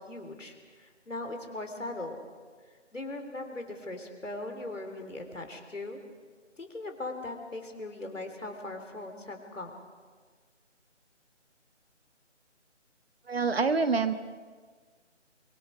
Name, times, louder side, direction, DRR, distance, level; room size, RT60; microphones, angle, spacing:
voice 1, 0.1-2.2 2.9-6.0 6.6-9.7, left 2 dB, 90° left, 4 dB, 3.5 m, -39 dB
voice 2, 13.3-14.1, right 4 dB, 55° right, 9 dB, 1.4 m, -26 dB
25.5 x 23.0 x 4.9 m, 1.5 s
figure-of-eight pair, 160°, 36 cm